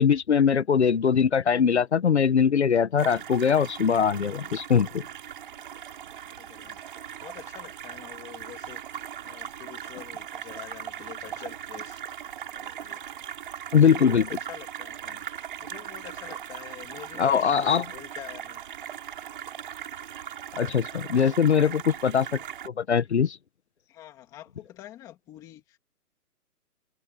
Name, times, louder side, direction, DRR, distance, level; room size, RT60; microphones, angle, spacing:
voice 1, 0.0-5.0 13.7-14.3 17.2-17.8 20.6-22.3 22.6-23.4, left 7 dB, 45° left, 1.4 m, -21 dB
sound 1, 3.0-22.7, right 9 dB, 35° right, 6.9 m, -39 dB
voice 2, 6.2-6.8 7.2-12.0 12.5-13.0 13.7-15.3 15.6-18.9 20.9-21.4 23.9-25.8, left 12 dB, 5° left, 2.2 m, -46 dB
hypercardioid pair, 175°, 47 cm